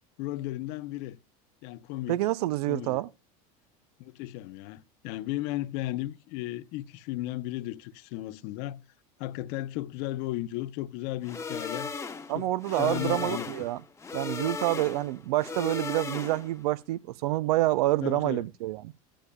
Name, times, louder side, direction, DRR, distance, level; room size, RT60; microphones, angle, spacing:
voice 1, 0.2-1.2 1.6-2.2 2.7-3.0 4.0-8.8 9.2-11.9 12.3-13.5 18.0-18.4, left 15 dB, 60° left, 0.7 m, -35 dB
voice 2, 2.1-3.1 12.3-13.8 14.1-18.9, right 16 dB, 85° right, 0.5 m, -27 dB
sound 1, 11.2-16.6, left 5 dB, 15° left, 0.9 m, -37 dB
14.5 x 10.0 x 2.3 m
supercardioid pair, 125°, 19 cm